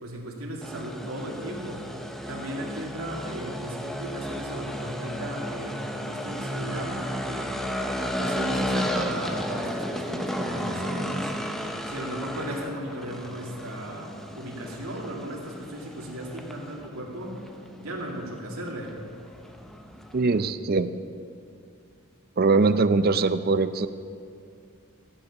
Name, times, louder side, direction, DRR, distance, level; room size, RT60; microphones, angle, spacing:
voice 1, 0.0-1.9 2.3-7.5 8.2-11.3 11.8-17.5 17.8-18.9, right 1 dB, 80° right, -2 dB, 2.6 m, -36 dB
sound 1, 0.6-20.5, equal, ahead, 0.6 m, -33 dB
voice 2, 20.1-20.9 22.4-23.9, right 3 dB, 45° right, 12 dB, 0.5 m, -22 dB
16.0 x 8.1 x 6.8 m, 2.3 s
head